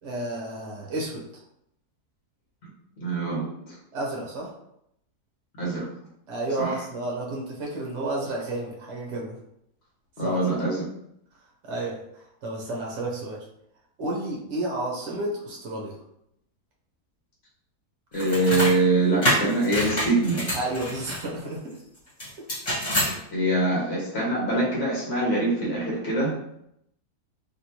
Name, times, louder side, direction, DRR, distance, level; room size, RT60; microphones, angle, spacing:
voice 1, 0.0-1.3 3.9-4.5 6.3-9.4 10.2-10.4 11.6-13.5 14.0-16.0 20.5-21.8, right 2 dB, 50° right, -2 dB, 1.1 m, -31 dB
voice 2, 3.0-3.7 5.6-5.9 6.6-6.7 10.2-10.9 18.1-20.4 23.3-26.3, right 2 dB, 45° left, -5 dB, 1.1 m, -24 dB
sound 1, 18.1-18.7 19.2-21.2 22.2-23.1, equal, 30° left, 1.5 m, -26 dB
3.2 x 2.8 x 2.9 m, 0.76 s
omnidirectional pair, 1.7 m